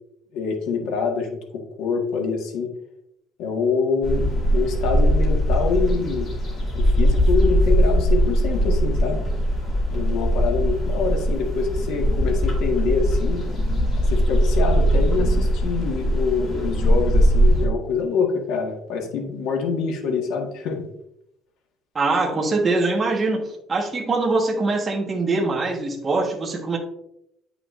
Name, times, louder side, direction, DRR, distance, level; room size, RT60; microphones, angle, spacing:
voice 1, 0.3-1.3 1.8-2.7 3.4-6.3 6.8-9.2 9.9-13.5 14.1-20.8, left 5 dB, 80° left, 1 dB, 1.5 m, -25 dB
sound 1, 4.0-17.6, equal, 35° left, 2.2 m, -20 dB
voice 2, 21.9-26.8, right 3 dB, 20° right, -1 dB, 1.3 m, -23 dB
8.7 x 6.0 x 2.5 m, 0.78 s
cardioid pair, 170°, 0 cm